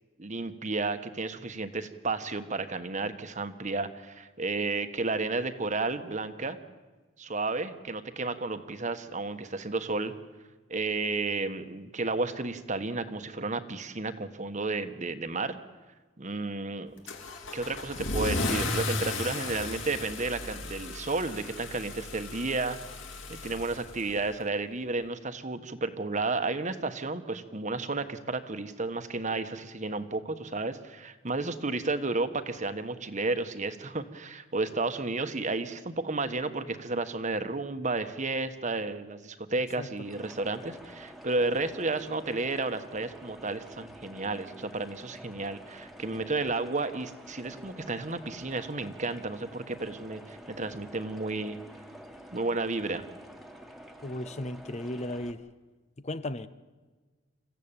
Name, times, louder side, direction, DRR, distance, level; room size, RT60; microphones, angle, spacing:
voice 1, 0.2-6.6 7.2-10.1 10.7-15.6 16.2-16.9 17.5-22.8 23.3-51.6 52.3-53.0, right 3 dB, 40° right, 1.3 m, -32 dB
Car / Engine starting / Accelerating revving vroom, 17.1-24.4, left 2 dB, 70° left, 2.8 m, -35 dB
sound 1, 40.0-55.3, equal, ahead, 1.6 m, -48 dB
voice 2, 54.0-55.4 56.0-56.5, left 1 dB, 35° left, 0.7 m, -35 dB
27.0 x 15.0 x 8.9 m
head